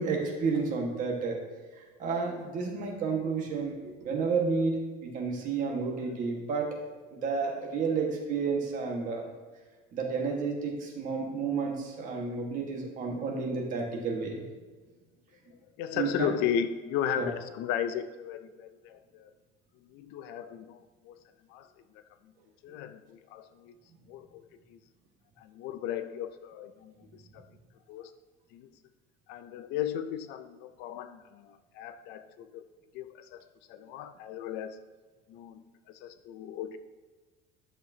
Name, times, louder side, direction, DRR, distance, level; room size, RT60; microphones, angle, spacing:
voice 1, 0.0-1.4 1.8-6.8 7.1-9.3 9.9-14.4 15.9-16.3 17.2-17.3, right 4 dB, 40° right, 0 dB, 1.5 m, -31 dB
voice 2, 15.5-19.3 19.9-21.2 21.5-21.7 21.9-22.0 22.6-23.8 24.1-24.4 24.7-24.8 25.4-27.5 27.9-28.1 28.5-28.7 29.3-32.6 32.9-34.8 35.3-36.8, left 9 dB, 55° left, 11 dB, 0.4 m, -36 dB
11.0 x 6.6 x 2.7 m, 1.3 s
cardioid pair, 175°, 21 cm